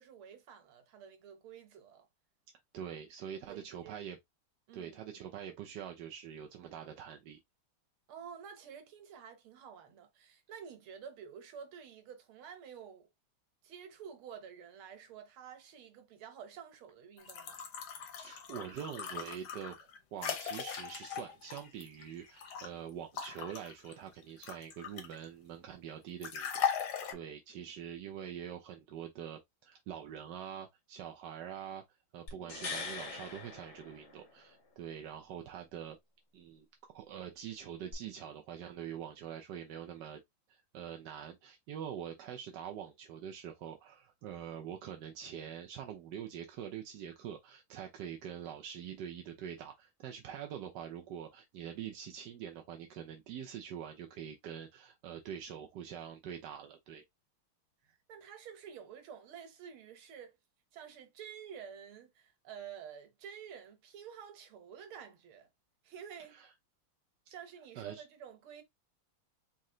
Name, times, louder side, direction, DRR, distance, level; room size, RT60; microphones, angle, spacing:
voice 1, 0.0-2.1 3.5-4.0 4.7-5.0 8.1-13.1 13.6-17.6 32.3-32.6 57.8-60.4 60.7-65.5 65.8-66.4 67.3-68.6, right 8 dB, 85° right, 2.0 m, -50 dB
voice 2, 2.7-4.2 4.7-7.4 18.2-19.8 20.1-31.8 32.1-36.0 36.3-40.2 40.5-57.0 66.3-66.5 67.7-68.0, right 9 dB, 65° right, 1.2 m, -45 dB
sound 1, 17.2-22.7 23.2-25.3 26.2-27.1, left 8 dB, 80° left, 1.9 m, -39 dB
sound 2, 32.3-34.5 37.9-38.0, left 4 dB, 55° left, 2.2 m, -42 dB
4.3 x 2.8 x 3.8 m
omnidirectional pair, 2.3 m